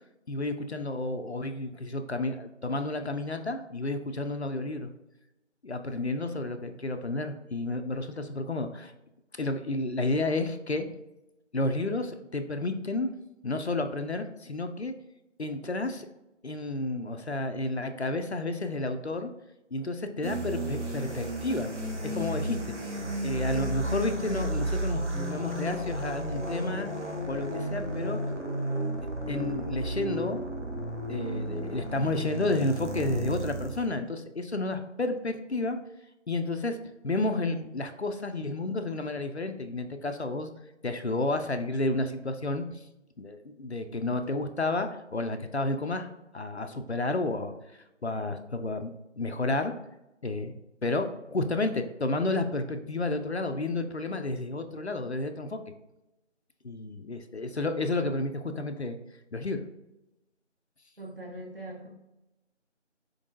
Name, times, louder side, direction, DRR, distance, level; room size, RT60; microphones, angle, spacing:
voice 1, 0.3-4.9 5.6-8.9 9.4-10.9 11.5-13.1 13.4-14.9 15.4-16.1 16.4-19.3 19.7-21.7 22.1-22.7 23.2-26.9 27.3-28.2 29.3-30.4 31.1-35.8 36.3-36.8 37.0-40.5 40.8-42.8 43.2-47.5 48.0-49.7 50.2-50.5 50.8-55.6 56.6-59.0 59.3-59.6, left 2 dB, 65° left, 7 dB, 0.5 m, -31 dB
sound 1, 20.2-33.9, right 1 dB, 70° right, 1.1 m, -33 dB
voice 2, 61.0-61.9, right 1 dB, 50° right, 0 dB, 1.1 m, -41 dB
4.6 x 3.9 x 2.6 m, 0.93 s
figure-of-eight pair, 175°, 36 cm